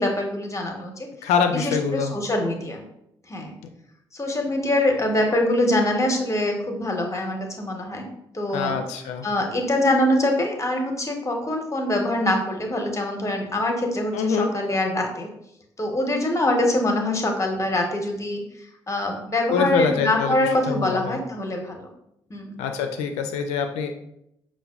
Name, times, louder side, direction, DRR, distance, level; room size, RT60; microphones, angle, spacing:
voice 1, 0.0-1.1 1.5-2.8 3.3-3.5 4.1-8.1 8.3-8.8 9.2-15.3 15.8-18.4 18.9-21.9 22.3-22.6, left 1 dB, 25° left, 2 dB, 0.9 m, -24 dB
voice 2, 1.2-2.1 8.5-9.3 14.1-14.5 19.5-21.2 22.6-23.9, left 6 dB, 75° left, 6 dB, 0.4 m, -25 dB
5.5 x 2.2 x 2.3 m, 0.79 s
hypercardioid pair, 45°, 12 cm